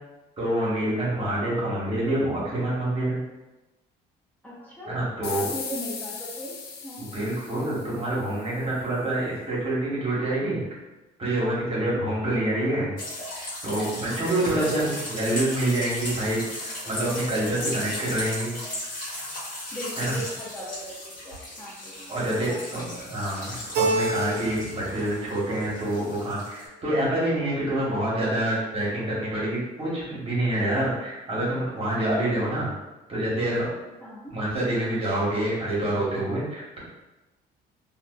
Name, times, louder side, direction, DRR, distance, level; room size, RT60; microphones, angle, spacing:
voice 1, 0.4-3.2 4.9-5.5 7.0-10.6 11.2-13.0 13.6-16.4 16.9-18.6 20.0-20.2 22.1-32.7 33.1-33.7 34.3-36.8, right 1 dB, 35° right, -6 dB, 1.0 m, -27 dB
voice 2, 4.4-5.0 5.3-6.5 6.8-7.1 14.4-14.7 19.7-23.2 34.0-34.3, equal, 10° left, -7 dB, 0.4 m, -39 dB
sound 1, 5.2-8.5, left 5 dB, 70° left, 0.4 m, -38 dB
sound 2, 13.0-26.7, left 1 dB, 55° left, 1.1 m, -36 dB
Keyboard (musical), 23.7-24.9 25.2-25.9, right 2 dB, 75° right, 0.6 m, -27 dB
2.4 x 2.2 x 2.2 m, 1.0 s
cardioid pair, 110°, 17 cm